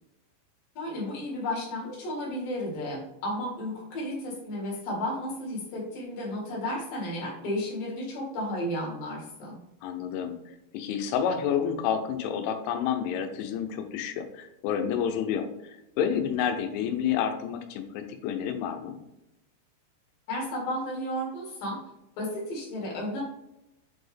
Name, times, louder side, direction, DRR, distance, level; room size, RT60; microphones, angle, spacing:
voice 1, 0.8-9.6 20.3-21.8 22.2-23.2, left 1 dB, 55° left, -3 dB, 2.8 m, -33 dB
voice 2, 9.8-10.4 10.7-19.0, left 8 dB, 80° left, 6 dB, 3.0 m, -29 dB
7.6 x 4.3 x 3.4 m, 0.87 s
omnidirectional pair, 5.9 m